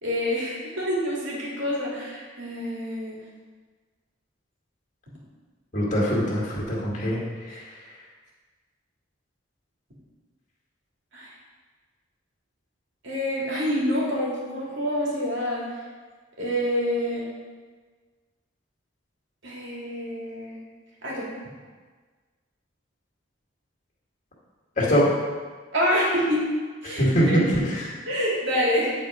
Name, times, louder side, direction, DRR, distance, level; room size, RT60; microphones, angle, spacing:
voice 1, 0.0-3.2 7.5-7.6 11.1-11.3 13.0-15.6 16.4-17.3 19.4-20.6 21.0-21.3 25.7-26.5 26.8-27.4 28.1-28.9, equal, 65° right, -5 dB, 2.5 m, -27 dB
voice 2, 5.7-7.2 7.5-7.6 24.8-25.1 26.8-27.9, equal, 35° left, -5 dB, 2.1 m, -23 dB
9.6 x 4.4 x 5.0 m, 1.4 s
head